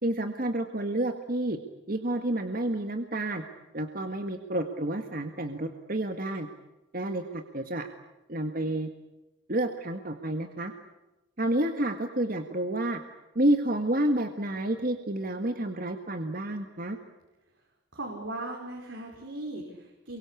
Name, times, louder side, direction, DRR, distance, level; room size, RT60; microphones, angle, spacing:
voice 1, 0.0-1.6 1.9-3.4 3.7-6.5 6.9-7.9 8.3-8.9 9.5-10.7 11.4-13.0 13.4-17.0, right 1 dB, 45° right, 6 dB, 1.8 m, -29 dB
voice 2, 17.9-20.2, right 2 dB, 80° right, 0 dB, 5.3 m, -38 dB
28.5 x 23.5 x 8.4 m, 1.0 s
head